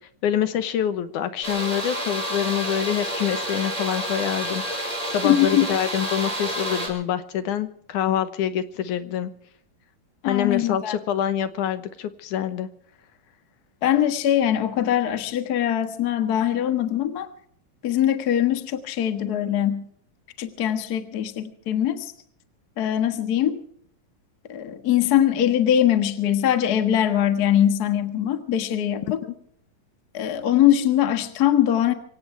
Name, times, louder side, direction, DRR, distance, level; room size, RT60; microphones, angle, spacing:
voice 1, 0.2-9.3 10.3-12.7 29.2-29.3, left 10 dB, 70° left, 11 dB, 2.4 m, -26 dB
sound 1, 1.4-6.9, right 1 dB, 10° right, 4.8 m, -29 dB
voice 2, 5.2-5.7 10.2-11.0 13.8-17.3 17.8-19.8 20.4-22.1 22.8-23.6 24.5-29.2 30.1-31.9, left 11 dB, 50° left, 8 dB, 1.1 m, -22 dB
25.0 x 17.5 x 3.4 m, 0.65 s
omnidirectional pair, 4.0 m